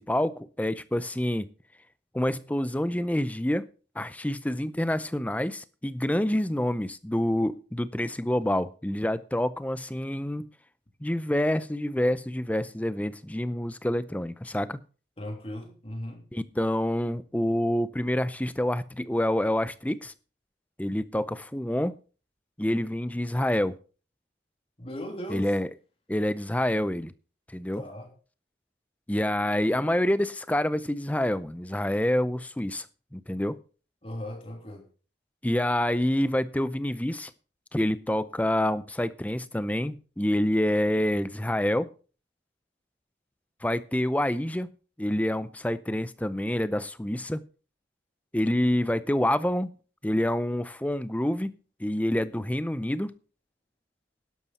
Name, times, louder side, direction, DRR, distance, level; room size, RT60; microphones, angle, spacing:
voice 1, 0.0-1.5 2.1-3.7 4.0-10.5 11.0-14.8 16.3-20.1 20.8-22.0 22.6-23.7 25.3-25.7 26.1-27.1 27.5-27.8 29.1-32.9 33.1-33.6 35.4-37.3 37.7-41.9 43.6-44.7 45.0-47.4 48.3-49.7 50.0-53.1, left 1 dB, 10° left, 0.5 m, -27 dB
voice 2, 15.2-16.3 24.8-25.5 27.7-28.1 34.0-34.8, left 1 dB, 30° left, 3.0 m, -37 dB
12.0 x 11.0 x 4.2 m
head